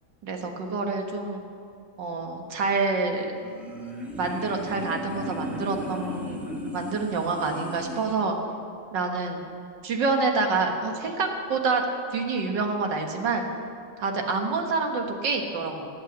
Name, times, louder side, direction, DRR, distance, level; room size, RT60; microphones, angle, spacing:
voice 1, 0.2-1.4 2.0-3.3 4.2-6.4 6.7-8.4 8.9-9.5 9.8-11.8 12.1-13.5 14.0-15.9, right 4 dB, 80° right, 3 dB, 2.1 m, -27 dB
sound 1, 3.3-8.2, equal, ahead, 2.0 m, -36 dB
18.0 x 8.7 x 7.5 m, 2.6 s
omnidirectional pair, 1.9 m